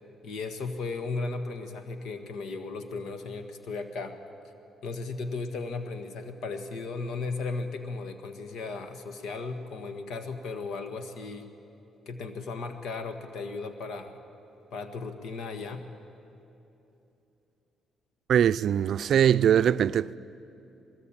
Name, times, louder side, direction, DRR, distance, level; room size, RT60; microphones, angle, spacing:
voice 1, 0.2-4.2 4.8-11.5 12.0-14.2 14.7-15.8, left 3 dB, 75° left, 1.5 m, -36 dB
voice 2, 18.3-20.2, right 9 dB, 65° right, 0.4 m, -22 dB
21.0 x 18.5 x 8.8 m
cardioid pair, 90°, 0 cm